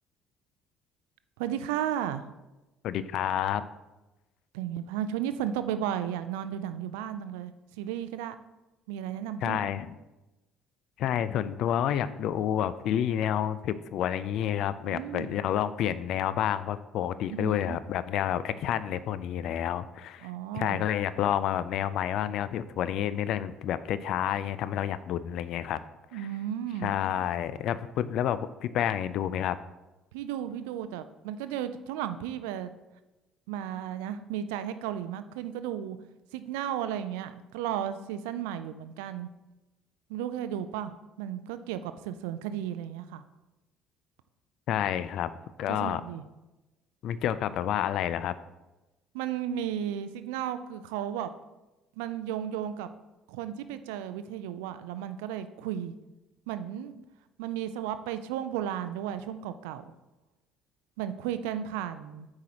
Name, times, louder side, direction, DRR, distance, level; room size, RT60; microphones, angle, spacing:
voice 1, 1.4-2.2 4.5-8.3 8.9-9.7 14.8-15.3 17.3-17.8 20.2-20.8 26.1-26.9 30.1-32.7 33.5-36.0 36.3-39.3 40.1-40.9 41.2-43.2 45.7-46.2 49.1-51.3 52.0-52.9 53.3-55.9 56.5-57.0 57.4-59.9 61.0-62.3, right 10 dB, 80° right, 11 dB, 0.3 m, -34 dB
voice 2, 2.8-3.6 9.4-9.9 11.0-25.8 26.1-26.2 26.8-29.6 44.7-45.3 45.6-46.0 47.0-48.3, left 10 dB, 65° left, 15 dB, 0.3 m, -29 dB
8.4 x 4.8 x 2.9 m, 1.0 s
hypercardioid pair, 60°, 0 cm